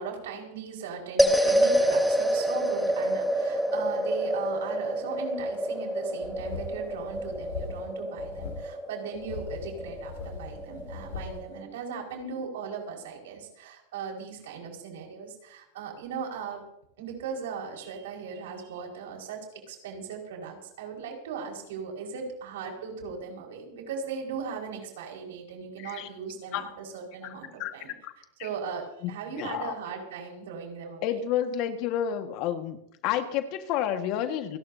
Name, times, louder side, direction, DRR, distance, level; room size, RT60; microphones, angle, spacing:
voice 1, 0.0-16.6 17.0-27.9 28.4-31.2, right 6 dB, 75° right, 1 dB, 5.4 m, -38 dB
sound 1, 1.2-11.6, equal, ahead, 1.1 m, -28 dB
sound 2, 6.2-7.9 8.2-8.6 9.1-11.4, left 5 dB, 85° left, 4.2 m, -40 dB
voice 2, 25.8-26.1 26.5-26.7 27.6-27.8 28.0-28.1 28.4-28.5 29.0-29.1 29.4-29.7 31.0-32.8 33.0-34.6, left 10 dB, 50° left, 7 dB, 1.7 m, -30 dB
29.0 x 12.0 x 2.9 m, 0.76 s
supercardioid pair, 125°, 0 cm